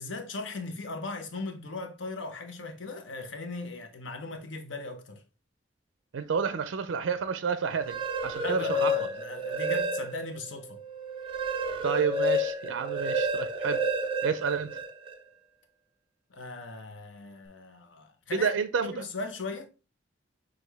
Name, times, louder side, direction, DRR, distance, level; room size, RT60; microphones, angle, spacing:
voice 1, 0.0-5.2 8.4-10.8 16.3-19.7, left 3 dB, 80° left, 0.8 m, -38 dB
voice 2, 6.1-8.9 11.8-13.8 14.2-14.8 18.4-19.0, right 6 dB, 90° right, 0.4 m, -30 dB
sound 1, 7.7-10.4 10.8-15.1, equal, 30° right, 0.6 m, -30 dB
6.3 x 2.5 x 3.3 m
head